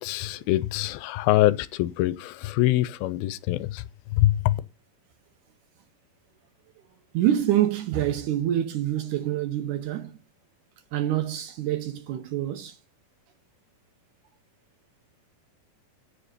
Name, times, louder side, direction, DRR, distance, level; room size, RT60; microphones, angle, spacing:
voice 1, 0.0-3.8 4.1-4.6, left 15 dB, 90° left, 2.5 m, -24 dB
voice 2, 7.1-10.2 10.9-12.8, right 12 dB, 75° right, 2.0 m, -26 dB
10.0 x 5.2 x 6.5 m
omnidirectional pair, 4.2 m